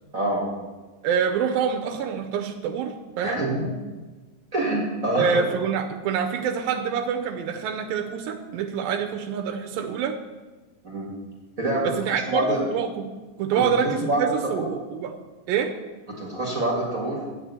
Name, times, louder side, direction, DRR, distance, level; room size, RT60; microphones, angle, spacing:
voice 1, 1.0-3.4 5.2-10.2 11.8-13.1 13.4-15.2 15.5-15.7, right 7 dB, 90° right, 4 dB, 2.4 m, -26 dB
voice 2, 3.2-3.7 4.5-5.4 10.8-11.1 11.6-12.0 12.3-12.6 13.5-13.7 14.0-14.2 14.5-14.7 16.2-17.2, right 1 dB, 35° right, -3 dB, 1.6 m, -26 dB
8.7 x 5.7 x 8.1 m, 1.2 s
omnidirectional pair, 4.0 m